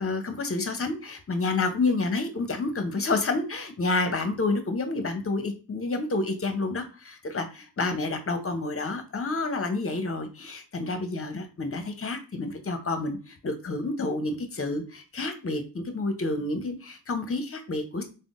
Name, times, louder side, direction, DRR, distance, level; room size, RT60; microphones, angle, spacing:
voice 1, 0.0-18.0, left 3 dB, 30° left, 7 dB, 0.7 m, -29 dB
3.5 x 2.0 x 2.5 m, 0.34 s
cardioid pair, 40°, 42 cm